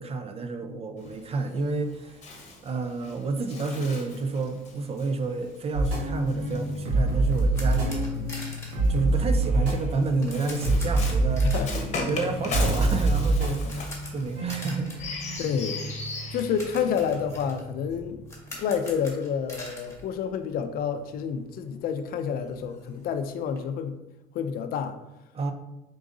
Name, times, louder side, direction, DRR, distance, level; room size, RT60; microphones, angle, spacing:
voice 1, 0.0-2.2 2.6-8.3 8.9-11.5 12.1-14.9 25.3-25.5, right 3 dB, 35° right, 8 dB, 0.5 m, -30 dB
Bird, 1.0-7.5 8.4-17.2, left 3 dB, 40° left, 1.0 m, -39 dB
sound 1, 5.7-18.3, right 2 dB, 85° right, 1.5 m, -27 dB
sound 2, 6.9-20.9 21.1-21.3 21.7-21.8 22.0-23.6, left 1 dB, 15° left, 1.5 m, -45 dB
voice 2, 15.4-15.9 16.3-18.2 18.6-24.0 24.3-25.0, left 7 dB, 60° left, 9 dB, 0.5 m, -29 dB
4.7 x 3.7 x 2.6 m, 0.96 s
supercardioid pair, 90°, 17 cm